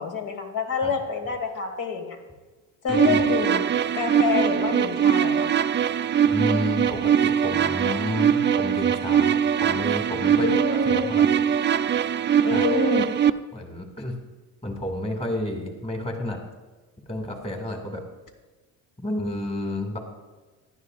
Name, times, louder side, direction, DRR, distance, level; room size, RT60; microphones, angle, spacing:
voice 1, 0.0-2.2 2.8-5.5 10.4-11.2 12.4-13.1, left 4 dB, 65° left, 4 dB, 1.8 m, -27 dB
voice 2, 2.9-3.2 6.3-10.5 10.8-11.4 12.5-12.7 13.5-14.2 14.6-16.4 17.1-18.0 19.0-20.0, left 1 dB, 20° left, 3 dB, 1.9 m, -30 dB
sound 1, 2.9-13.3, right 8 dB, 35° right, 0.4 m, -22 dB
18.0 x 11.5 x 2.4 m, 1.3 s
cardioid pair, 120°, 34 cm